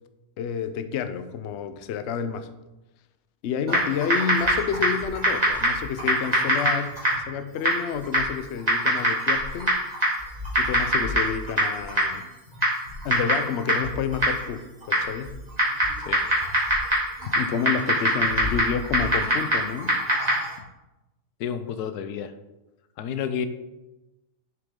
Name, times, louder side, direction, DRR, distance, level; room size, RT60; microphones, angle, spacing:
voice 1, 0.4-2.5 3.4-7.0 7.3-9.8 10.6-12.2 13.0-15.4 17.4-20.0, left 7 dB, 60° left, 10 dB, 0.8 m, -29 dB
Typing, 3.7-20.6, equal, 25° right, 2.8 m, -25 dB
voice 2, 21.4-22.3 23.0-23.5, left 8 dB, 90° left, 11 dB, 1.2 m, -30 dB
7.6 x 7.0 x 3.7 m, 1.0 s
omnidirectional pair, 1.6 m